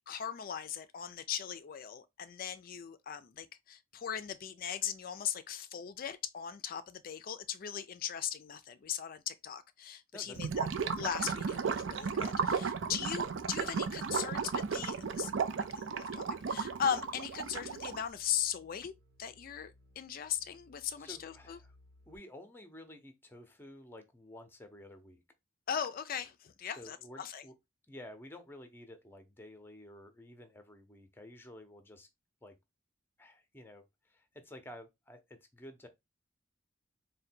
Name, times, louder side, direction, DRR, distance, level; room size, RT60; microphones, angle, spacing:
voice 1, 0.1-10.7 11.0-15.3 15.6-18.9 19.2-21.6 25.7-27.4, left 8 dB, 50° left, 0.4 m, -38 dB
voice 2, 10.1-10.7 21.0-21.7 22.1-25.2 26.8-27.5 27.9-32.1 32.4-32.5 33.2-35.9, left 1 dB, 10° left, 0.6 m, -52 dB
Gurgling / Liquid, 10.3-18.1, right 5 dB, 75° right, 0.5 m, -34 dB
sound 1, 16.2-22.2, left 2 dB, 55° right, 1.1 m, -63 dB
3.8 x 2.2 x 4.3 m
head